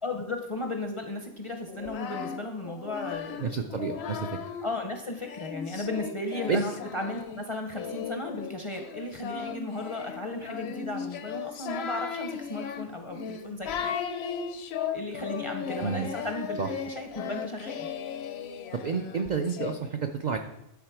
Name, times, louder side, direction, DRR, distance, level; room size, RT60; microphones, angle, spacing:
voice 1, 0.0-3.5 3.9-4.0 4.6-13.9 14.9-17.9, left 2 dB, 40° left, 3 dB, 0.5 m, -35 dB
Singing, 1.7-4.7 5.3-19.7, left 7 dB, 65° left, 0.8 m, -36 dB
voice 2, 3.4-4.3 6.5-6.6 15.8-16.1 16.6-16.7 18.8-20.4, right 5 dB, 75° right, 5 dB, 0.4 m, -29 dB
9.4 x 4.0 x 4.6 m, 0.86 s
omnidirectional pair, 1.3 m